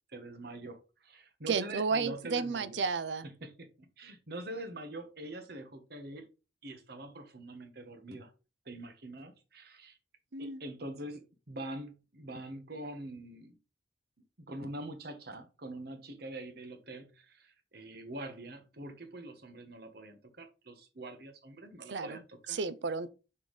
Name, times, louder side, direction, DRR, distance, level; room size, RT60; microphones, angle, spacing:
voice 1, 0.1-2.9 3.2-6.3 6.6-8.3 8.6-10.0 10.4-13.6 14.4-22.6, right 1 dB, 60° right, 1.3 m, -44 dB
voice 2, 1.5-3.3 10.3-10.6 21.9-22.2 22.5-23.1, right 4 dB, 75° right, 0.6 m, -32 dB
6.2 x 5.5 x 3.2 m
head